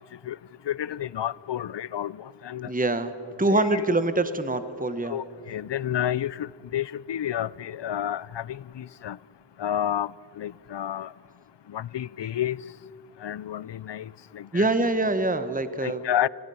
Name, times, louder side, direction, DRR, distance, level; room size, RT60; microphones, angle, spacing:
voice 1, 0.7-2.7 3.5-3.8 5.1-9.2 9.6-10.1 10.4-11.1 11.7-12.6 13.2-14.7 15.8-16.3, left 11 dB, 70° left, 0.5 m, -30 dB
voice 2, 2.7-3.1 3.4-5.2 14.5-16.0, right 2 dB, 20° right, 1.1 m, -24 dB
26.5 x 18.0 x 5.6 m
wide cardioid pair, 45°, 44 cm